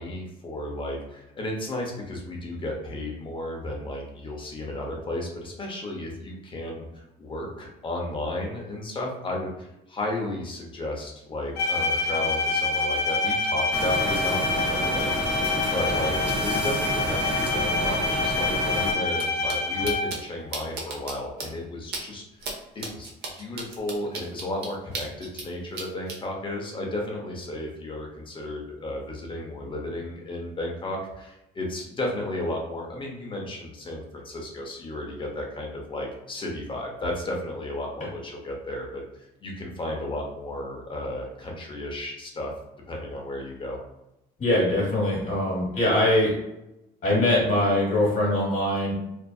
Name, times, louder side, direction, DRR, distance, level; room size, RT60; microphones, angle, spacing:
voice 1, 0.0-22.5 22.7-42.5 42.9-43.8, left 1 dB, 30° left, 0 dB, 0.7 m, -33 dB
Bowed string instrument, 11.5-20.3, left 3 dB, 70° left, 0.8 m, -27 dB
sound 1, 13.7-18.9, right 1 dB, 5° right, 0.6 m, -29 dB
sound 2, 19.1-19.2 19.5-19.6 19.8-20.2 20.5-21.1 21.4-21.5 21.9-22.0 22.4-22.5 22.8-25.5 25.7-26.2, right 3 dB, 75° right, 0.6 m, -34 dB
voice 2, 44.4-46.3 47.0-48.9, left 1 dB, 50° left, -5 dB, 1.2 m, -22 dB
2.6 x 2.4 x 2.3 m, 0.89 s
cardioid pair, 110°, 17 cm